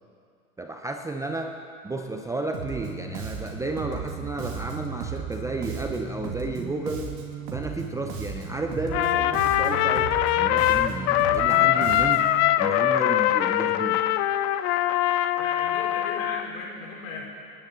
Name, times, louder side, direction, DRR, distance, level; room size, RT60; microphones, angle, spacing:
voice 1, 0.6-7.2 7.5-12.3 12.6-14.0, right 2 dB, 5° right, 4 dB, 0.5 m, -32 dB
Bass guitar, 2.5-12.4, right 5 dB, 50° right, 2.4 m, -35 dB
Trumpet, 8.9-16.5, left 13 dB, 45° left, 0.7 m, -22 dB
voice 2, 15.4-17.3, left 4 dB, 65° left, -3 dB, 4.8 m, -36 dB
28.0 x 10.5 x 4.0 m, 2.4 s
hypercardioid pair, 115°, 44 cm